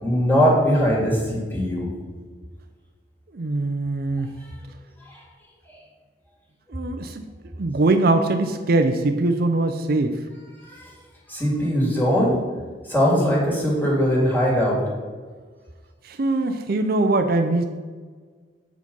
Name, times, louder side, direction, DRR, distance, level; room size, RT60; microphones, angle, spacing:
voice 1, 0.0-1.9 10.8-10.9 11.3-12.4 12.9-14.8, equal, 10° left, -4 dB, 2.2 m, -20 dB
voice 2, 3.3-4.3 6.7-7.2 7.6-10.2 16.0-17.6, right 2 dB, 55° right, 7 dB, 0.5 m, -22 dB
8.1 x 5.1 x 5.3 m, 1.5 s
head